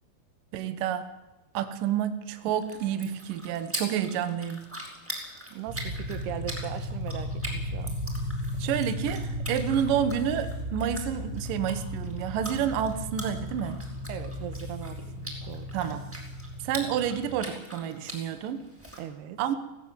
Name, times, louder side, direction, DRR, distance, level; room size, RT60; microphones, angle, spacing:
voice 1, 0.5-1.1 1.5-4.6 8.6-13.8 15.7-16.1 16.6-18.6 19.4-19.6, right 9 dB, 65° right, 9 dB, 2.7 m, -29 dB
sound 1, 2.4-19.0, right 1 dB, 5° right, 4.2 m, -43 dB
voice 2, 5.5-8.0 14.1-15.7 19.0-19.4, right 11 dB, 85° right, 9 dB, 3.3 m, -39 dB
sound 2, 5.7-17.3, equal, 40° right, 0.6 m, -35 dB
18.0 x 17.0 x 8.9 m, 1.0 s
omnidirectional pair, 4.5 m